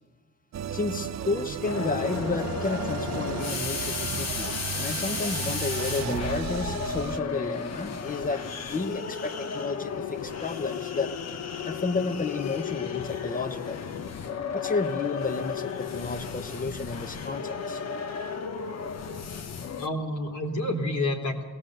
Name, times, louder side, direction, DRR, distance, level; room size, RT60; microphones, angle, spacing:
sound 1, 0.5-7.2, right 8 dB, 60° right, 0.8 m, -34 dB
voice 1, 0.7-4.5 4.7-11.1 11.6-13.8 14.5-17.8, left 3 dB, 25° left, 10 dB, 1.2 m, -31 dB
voice 2, 1.4-1.7 19.8-21.4, left 1 dB, 75° left, 2 dB, 3.4 m, -30 dB
sound 2, 1.6-19.9, left 6 dB, 55° left, 1.2 m, -34 dB
sound 3, 6.0-9.2, right 3 dB, 30° right, 1.4 m, -41 dB
18.5 x 17.5 x 8.0 m, 1.4 s
cardioid pair, 90°, 30 cm